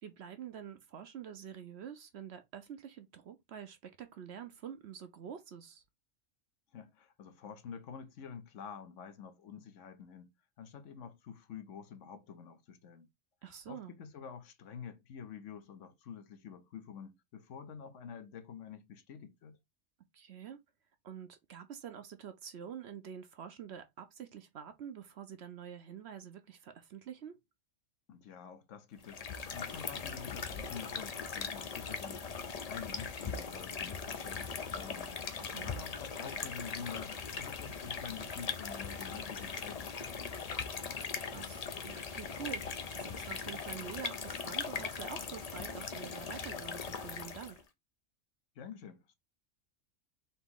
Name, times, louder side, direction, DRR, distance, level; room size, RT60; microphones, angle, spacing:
voice 1, 0.0-5.8 13.4-14.0 20.1-20.6 21.0-27.4 35.4-35.7 41.0-47.6, right 8 dB, 60° right, 0.9 m, -47 dB
voice 2, 6.7-10.3 10.6-13.1 13.7-19.6 28.1-35.1 35.6-40.6 48.5-49.1, left 7 dB, 70° left, 1.0 m, -48 dB
sound 1, 29.0-47.6, left 5 dB, 45° left, 0.5 m, -40 dB
4.1 x 3.0 x 3.6 m
omnidirectional pair, 1.4 m